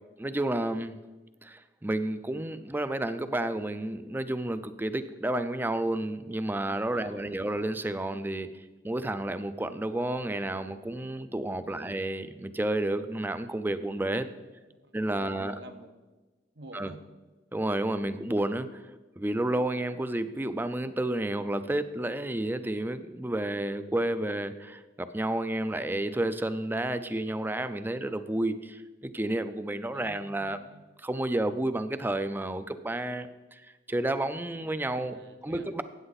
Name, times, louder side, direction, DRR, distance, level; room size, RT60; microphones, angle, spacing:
voice 1, 0.2-1.0 1.4-8.5 8.8-14.3 14.9-15.6 16.7-16.9 17.5-18.8 19.2-30.6 31.0-33.6 33.9-35.8, right 1 dB, 10° right, 12 dB, 0.5 m, -31 dB
voice 2, 6.9-7.4 11.7-12.0 14.2-15.9 16.5-17.0 17.9-18.1 29.9-30.8 34.9-35.7, right 1 dB, 75° right, 6 dB, 1.2 m, -51 dB
13.0 x 8.8 x 4.1 m, 1.2 s
head